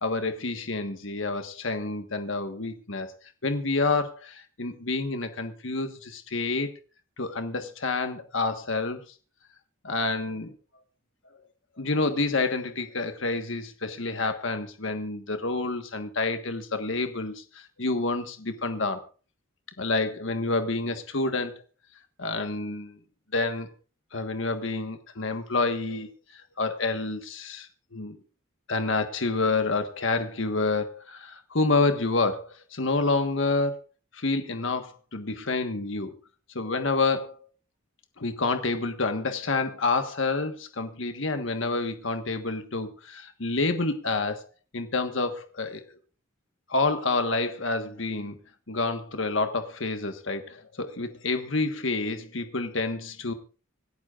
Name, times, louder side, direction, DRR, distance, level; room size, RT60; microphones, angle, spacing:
voice 1, 0.0-3.1 3.4-6.7 7.2-9.0 9.8-10.5 11.8-19.1 19.8-21.6 22.2-23.0 23.3-23.7 24.1-28.2 28.7-33.8 34.1-36.2 36.5-37.5 38.2-44.4 44.7-45.8 46.7-48.4 48.7-53.3, left 3 dB, 65° left, 7 dB, 1.4 m, -28 dB
26.0 x 12.0 x 2.5 m, 0.36 s
head